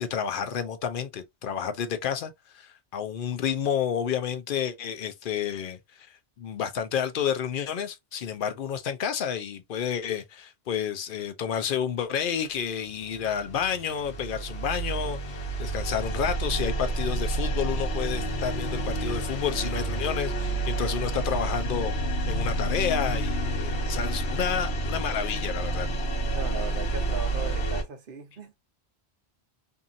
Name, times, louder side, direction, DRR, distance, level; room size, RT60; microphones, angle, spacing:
voice 1, 0.0-21.9 22.3-25.9, left 8 dB, 60° left, 0.6 m, -30 dB
sound 1, 12.9-27.8, right 2 dB, 75° left, 1.1 m, -29 dB
voice 2, 26.3-28.5, right 5 dB, 60° right, 0.9 m, -37 dB
2.7 x 2.6 x 2.4 m
omnidirectional pair, 1.1 m